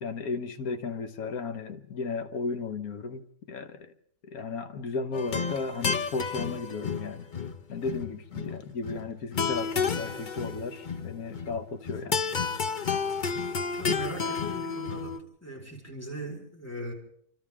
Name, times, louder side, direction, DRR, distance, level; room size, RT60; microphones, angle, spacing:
voice 1, 0.0-3.9 4.3-7.3 7.7-12.2, left 4 dB, 65° left, 1.7 m, -35 dB
sound 1, 5.1-15.2, left 5 dB, 35° left, 0.8 m, -31 dB
voice 2, 13.8-16.9, right 1 dB, 10° left, 4.6 m, -39 dB
28.0 x 25.5 x 3.6 m
omnidirectional pair, 1.7 m